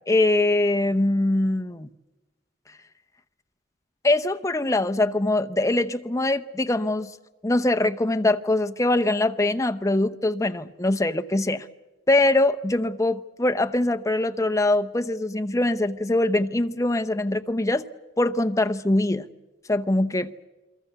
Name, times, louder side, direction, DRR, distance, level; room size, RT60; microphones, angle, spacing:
voice 1, 0.1-1.9 4.0-7.1 7.4-11.7 12.1-17.8 18.2-19.3 19.7-20.3, left 2 dB, 15° left, 0.7 m, -23 dB
28.5 x 22.5 x 6.9 m
head